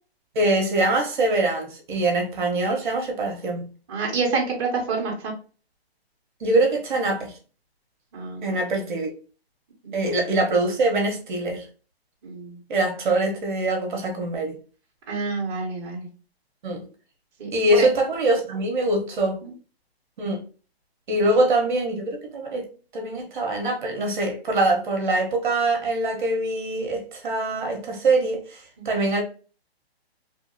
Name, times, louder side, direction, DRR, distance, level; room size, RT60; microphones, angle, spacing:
voice 1, 0.3-3.7 6.4-7.4 8.4-9.1 9.9-11.7 12.7-14.6 16.6-16.8 17.5-19.4 20.2-20.4 21.1-22.7 22.9-29.2, right 2 dB, 50° right, 0.9 m, -23 dB
voice 2, 3.9-5.3 8.1-8.6 9.8-10.1 12.2-12.6 15.1-16.1 17.4-17.5 17.8-17.9 19.4-19.5 21.1-21.2 28.8-28.9, right 4 dB, 25° right, 0.8 m, -28 dB
2.8 x 2.7 x 2.6 m
hypercardioid pair, 170°, 32 cm